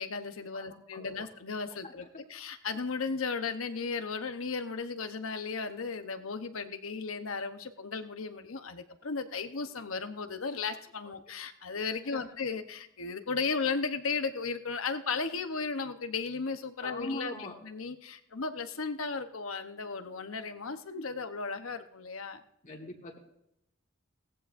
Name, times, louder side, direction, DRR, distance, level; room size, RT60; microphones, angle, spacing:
voice 1, 0.0-17.3 17.6-22.4, left 4 dB, 85° left, 8 dB, 1.0 m, -35 dB
voice 2, 0.5-1.1 1.8-1.9 11.0-11.1 12.1-12.2 16.8-17.6 22.6-23.2, left 2 dB, 40° left, 0 dB, 1.5 m, -41 dB
18.5 x 14.5 x 2.6 m, 0.82 s
head